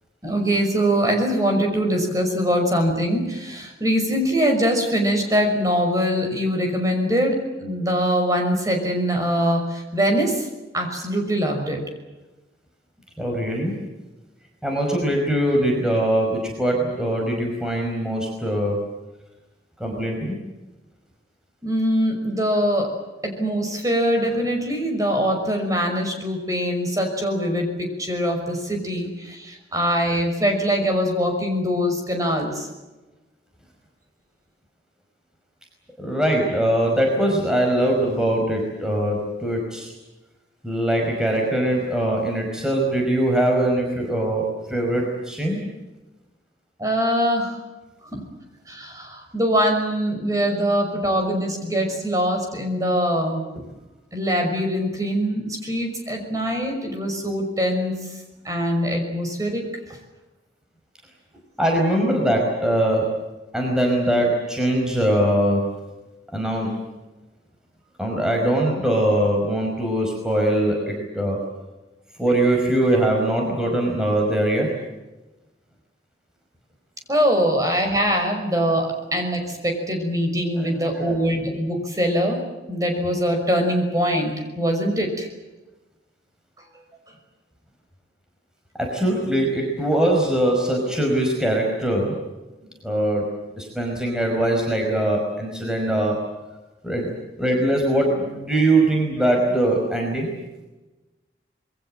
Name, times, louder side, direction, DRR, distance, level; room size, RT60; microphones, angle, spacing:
voice 1, 0.2-10.5 10.7-11.8 21.6-22.9 23.2-32.7 46.8-47.6 48.1-48.2 48.7-53.4 54.1-58.1 58.4-59.6 77.1-82.4 82.7-85.3, equal, 20° right, 3 dB, 5.9 m, -23 dB
voice 2, 13.2-13.8 14.6-18.8 19.8-20.4 36.0-39.9 40.6-45.6 61.6-63.2 63.5-65.6 66.3-66.8 68.0-71.4 72.2-74.7 80.6-80.9 88.8-92.2 92.8-93.3 93.6-96.3 96.8-97.1 97.4-100.3, right 1 dB, 5° right, 0 dB, 5.1 m, -22 dB
27.0 x 23.0 x 7.7 m, 1.1 s
head